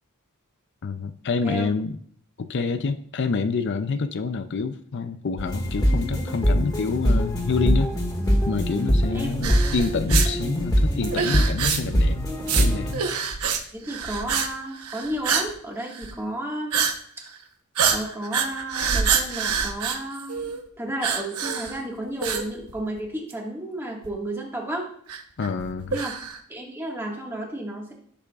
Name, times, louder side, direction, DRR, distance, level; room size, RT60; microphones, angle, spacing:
voice 1, 0.8-2.0 2.4-7.9 8.5-12.2 12.6-12.9 25.4-26.0, left 4 dB, 55° left, 9 dB, 0.5 m, -27 dB
sound 1, 5.4-12.9, equal, 20° left, 1.9 m, -23 dB
sound 2, 9.4-10.3 11.0-12.0 12.4-12.7 12.9-13.6 13.9-14.5 14.7-15.5 15.8-16.1 16.7-16.9 17.3-17.4 17.8-20.6 21.0-21.8 22.2-23.0 23.3-23.4 24.0-24.1 25.1-26.4, right 6 dB, 90° right, 1.0 m, -26 dB
voice 2, 13.7-16.8 17.9-20.5 20.8-24.9 25.9-26.1 26.5-27.9, right 1 dB, 10° right, -1 dB, 1.8 m, -32 dB
15.0 x 7.0 x 2.4 m, 0.63 s
head